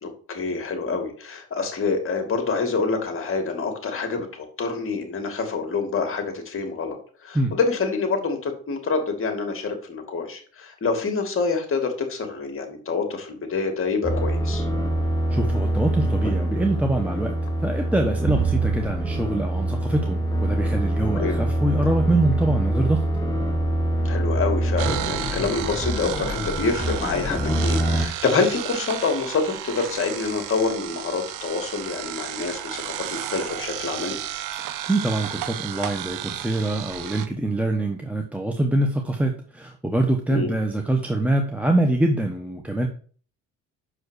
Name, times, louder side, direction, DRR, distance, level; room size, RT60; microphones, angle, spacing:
voice 1, 0.0-14.7 21.2-21.4 24.0-34.2 40.3-40.5, left 4 dB, 40° left, 4 dB, 2.4 m, -26 dB
sound 1, 14.0-28.1, right 1 dB, 10° left, 1.6 m, -25 dB
voice 2, 15.3-17.3 17.6-23.1 34.6-42.9, right 2 dB, 5° right, 2 dB, 1.0 m, -24 dB
sound 2, 18.2-20.8, right 10 dB, 45° right, 0.5 m, -30 dB
sound 3, 24.8-37.3, right 12 dB, 85° right, 0.8 m, -33 dB
6.2 x 4.9 x 6.4 m, 0.43 s
cardioid pair, 95°, 31 cm